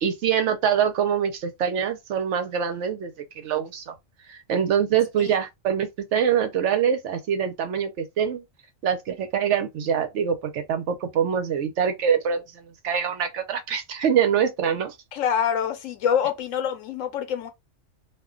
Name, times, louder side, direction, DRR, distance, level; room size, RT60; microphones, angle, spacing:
voice 1, 0.0-3.9 4.3-8.4 8.8-14.9, right 8 dB, 75° right, 0.9 m, -24 dB
voice 2, 15.1-17.5, left 8 dB, 90° left, 1.0 m, -26 dB
2.4 x 2.1 x 3.5 m
omnidirectional pair, 1.3 m